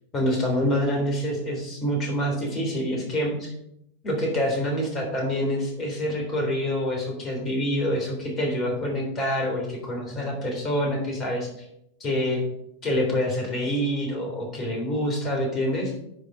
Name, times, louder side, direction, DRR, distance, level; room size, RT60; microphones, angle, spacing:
voice 1, 0.1-3.5 4.0-11.7 12.0-12.4 12.8-15.9, equal, 25° left, 1 dB, 3.5 m, -26 dB
10.0 x 5.4 x 4.9 m, 0.78 s
figure-of-eight pair, 90°, 0 cm